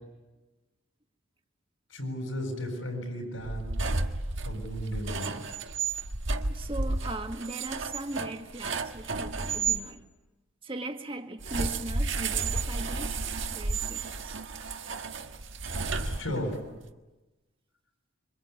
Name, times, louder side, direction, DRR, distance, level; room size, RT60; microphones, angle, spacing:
voice 1, 1.9-3.8 4.4-5.4 16.0-16.6, equal, 80° left, 2 dB, 7.6 m, -34 dB
sound 1, 3.4-9.8 11.4-16.6, right 3 dB, 65° right, 1.5 m, -32 dB
voice 2, 6.5-10.0 10.6-13.2 13.5-14.4, right 2 dB, 25° right, 5 dB, 1.7 m, -39 dB
27.0 x 25.0 x 8.5 m, 1.1 s
head